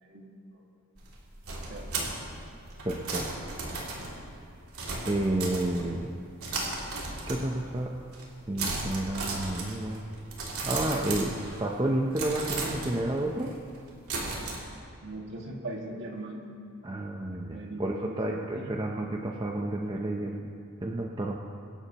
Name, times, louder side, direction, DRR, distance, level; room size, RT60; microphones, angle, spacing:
voice 1, 0.0-0.3 1.5-2.0 15.0-16.5 17.5-18.7, right 2 dB, 55° right, -1 dB, 2.0 m, -40 dB
sound 1, 1.0-6.1 6.4-7.7 8.0-8.3 8.6-11.8 12.1-14.6, right 3 dB, 75° right, 2.8 m, -36 dB
voice 2, 2.8-3.3 5.0-6.1 7.2-7.9 8.5-10.0 10.6-13.5 16.8-20.5 20.8-21.4, right 1 dB, 20° right, 0 dB, 0.7 m, -30 dB
25.0 x 11.5 x 3.0 m, 2.5 s
head